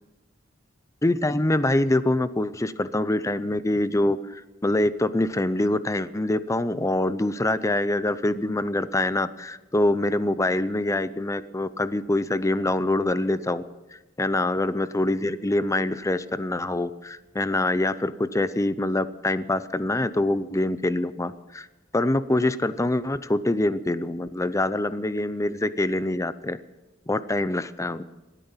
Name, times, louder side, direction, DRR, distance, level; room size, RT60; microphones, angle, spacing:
voice 1, 1.0-13.6 13.9-21.7 21.9-26.6 27.1-28.0, left 1 dB, 15° left, 14 dB, 0.6 m, -25 dB
27.0 x 9.2 x 5.7 m, 1.1 s
head